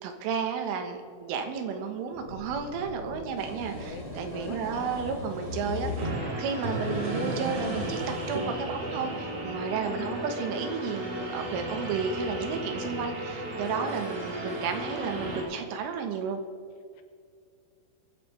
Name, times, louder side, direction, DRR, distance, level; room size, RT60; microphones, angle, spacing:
voice 1, 0.0-16.4, right 6 dB, 90° right, 5 dB, 3.9 m, -32 dB
sound 1, 2.1-6.6 7.1-7.2, left 1 dB, 55° left, 2.9 m, -48 dB
sound 2, 3.0-6.1 6.5-8.5, equal, 15° right, 3.8 m, -35 dB
voice 2, 3.7-5.1 5.8-6.4 9.9-10.2 14.1-14.7 17.0-17.1, left 6 dB, 75° left, 6 dB, 3.5 m, -44 dB
sound 3, 6.0-15.4, right 1 dB, 65° right, 5.0 m, -35 dB
22.0 x 10.0 x 3.4 m, 2.2 s
omnidirectional pair, 5.5 m